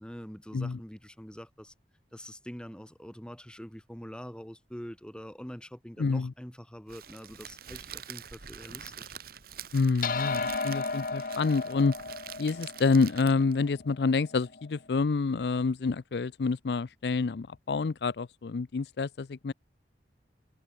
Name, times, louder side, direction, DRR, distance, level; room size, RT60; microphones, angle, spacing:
voice 1, 0.0-1.7 2.1-9.1, equal, 5° left, 2.7 m, -44 dB
voice 2, 6.0-6.3 9.7-11.9 12.4-19.5, left 4 dB, 65° left, 0.5 m, -28 dB
Crackle, 6.9-13.6, right 9 dB, 55° right, 1.5 m, -45 dB
sound 1, 10.0-14.7, left 4 dB, 50° left, 1.5 m, -35 dB
head